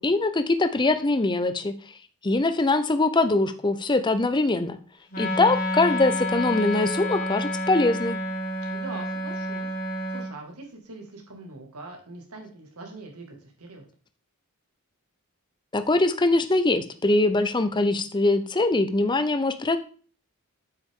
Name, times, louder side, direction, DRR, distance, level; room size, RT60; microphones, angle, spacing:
voice 1, 0.0-1.7 2.2-4.8 5.2-8.2 15.7-19.8, left 2 dB, 20° left, 10 dB, 0.5 m, -22 dB
Wind instrument woodwind instrument, 5.1-10.3, left 1 dB, 40° left, 1.7 m, -29 dB
voice 2, 5.1-5.5 8.7-13.8, right 2 dB, 85° right, 2 dB, 2.0 m, -43 dB
8.3 x 6.0 x 3.7 m, 0.41 s
head